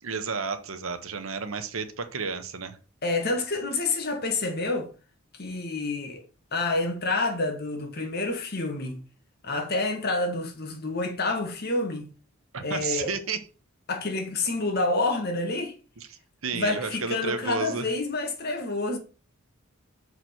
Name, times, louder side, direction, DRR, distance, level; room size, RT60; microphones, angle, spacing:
voice 1, 0.0-2.8 12.5-13.4 16.0-16.1 16.4-17.9, right 5 dB, 75° right, 1.2 m, -32 dB
voice 2, 3.0-4.9 5.4-6.2 6.5-9.0 9.4-12.1 12.6-13.1 13.9-15.7 16.5-19.0, left 2 dB, 50° left, 1.8 m, -28 dB
6.4 x 4.9 x 5.9 m
head